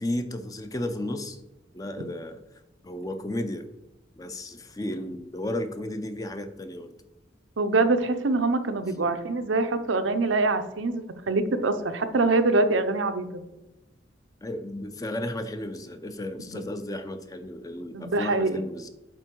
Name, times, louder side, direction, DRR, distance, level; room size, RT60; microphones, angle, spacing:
voice 1, 0.0-1.4 1.7-2.4 2.8-3.7 4.2-6.9 14.4-18.9, left 1 dB, 20° left, 9 dB, 0.5 m, -33 dB
voice 2, 7.6-13.3 16.5-16.6 17.9-18.5, right 3 dB, 90° right, 8 dB, 0.7 m, -24 dB
7.7 x 4.5 x 4.6 m, 0.97 s
head